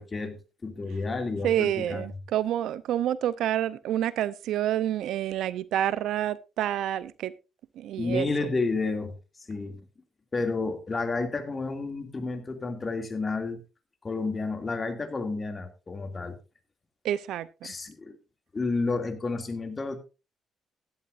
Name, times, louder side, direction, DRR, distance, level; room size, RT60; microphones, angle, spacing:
voice 1, 0.0-2.1 8.0-9.8 10.3-13.6 14.0-16.4 17.6-18.2 18.5-20.0, left 3 dB, 30° left, 6 dB, 2.4 m, -31 dB
voice 2, 1.4-7.3 7.8-8.3 17.0-17.5, right 11 dB, 80° right, 17 dB, 0.6 m, -28 dB
16.0 x 11.5 x 2.6 m, 0.29 s
cardioid pair, 90°, 0 cm